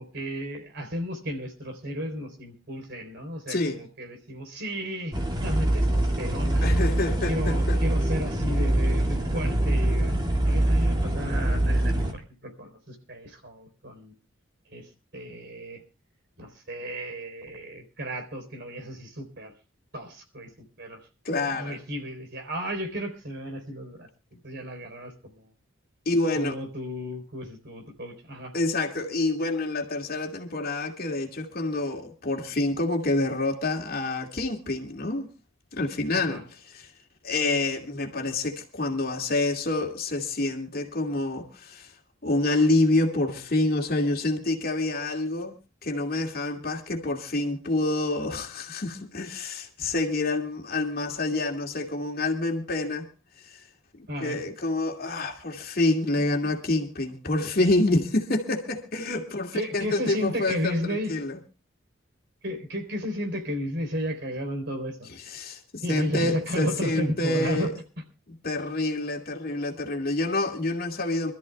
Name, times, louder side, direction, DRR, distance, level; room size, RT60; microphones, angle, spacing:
voice 1, 0.0-6.8 7.3-10.2 10.4-14.1 14.7-15.8 16.4-19.5 19.9-20.5 20.8-21.0 21.4-24.1 24.4-25.5 26.4-28.5 36.1-36.4 54.1-54.4 59.5-61.1 62.4-65.1 65.8-67.7, equal, 55° right, 4.0 m, -33 dB
voice 2, 3.5-3.8 6.6-7.8 21.2-21.8 26.1-26.5 28.5-35.3 35.7-36.4 36.7-36.9 37.2-41.9 42.2-45.5 45.8-53.1 53.4-53.5 54.2-61.4 65.3-67.7 68.4-71.3, left 2 dB, 45° left, 2.4 m, -27 dB
sound 1, 5.1-12.1, right 1 dB, 20° right, 2.1 m, -24 dB
27.0 x 13.5 x 2.3 m
head